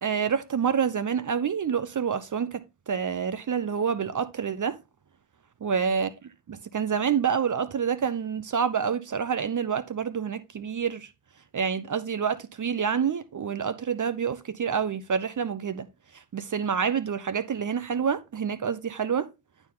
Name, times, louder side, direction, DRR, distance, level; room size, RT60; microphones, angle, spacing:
voice 1, 0.0-4.8 5.6-6.1 6.5-11.1 11.5-15.9 16.1-19.3, right 7 dB, 45° right, 0.9 m, -27 dB
11.0 x 4.9 x 3.8 m
cardioid pair, 70°, 44 cm